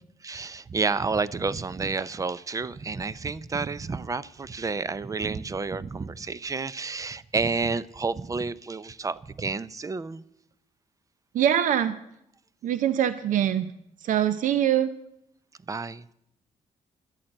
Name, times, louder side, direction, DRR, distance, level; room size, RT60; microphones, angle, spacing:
voice 1, 0.2-10.2 15.7-16.1, right 4 dB, 25° right, 19 dB, 0.5 m, -30 dB
voice 2, 11.3-12.0 12.6-13.7 14.0-14.9, right 10 dB, 75° right, 13 dB, 0.7 m, -23 dB
12.5 x 8.7 x 7.8 m, 0.77 s
cardioid pair, 100°, 14 cm